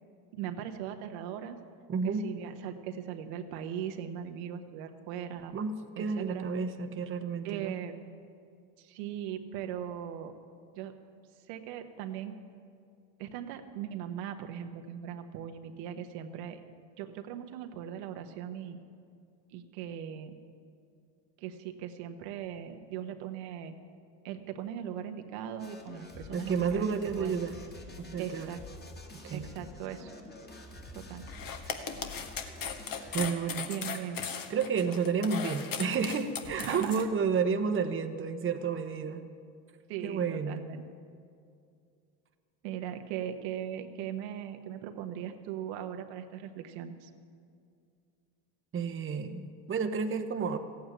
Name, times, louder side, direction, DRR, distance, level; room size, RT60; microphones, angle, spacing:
voice 1, 0.3-1.6 2.0-5.5 5.9-6.5 7.4-7.9 8.8-10.3 10.7-11.0 11.5-12.4 13.2-16.6 17.0-18.8 19.5-20.4 21.4-23.7 24.2-26.9 27.2-27.4 28.2-28.6 29.3-30.1 30.9-31.2 33.7-34.2 36.6-37.0 39.9-40.8 42.6-47.1, right 9 dB, 75° right, 6 dB, 1.3 m, -39 dB
voice 2, 1.9-2.3 5.5-7.7 26.3-27.6 28.0-28.5 29.2-29.4 33.1-33.7 34.5-39.3 40.0-40.6 48.7-50.6, right 5 dB, 25° right, 6 dB, 1.0 m, -31 dB
sound 1, 25.6-33.4, left 2 dB, 20° left, 2.1 m, -48 dB
sound 2, 31.3-37.0, left 7 dB, 40° left, 1.5 m, -37 dB
15.0 x 8.7 x 9.2 m, 2.3 s
supercardioid pair, 95°, 49 cm